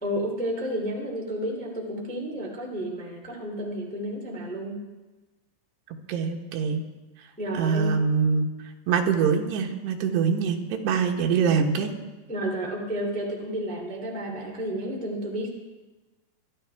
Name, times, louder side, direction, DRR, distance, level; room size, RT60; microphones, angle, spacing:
voice 1, 0.0-4.7 7.4-8.0 12.3-15.5, equal, 5° left, -1 dB, 1.5 m, -31 dB
voice 2, 6.1-6.8 7.6-8.5 8.9-11.9, right 6 dB, 85° right, 2 dB, 3.3 m, -24 dB
23.0 x 12.5 x 3.5 m, 1.2 s
omnidirectional pair, 4.7 m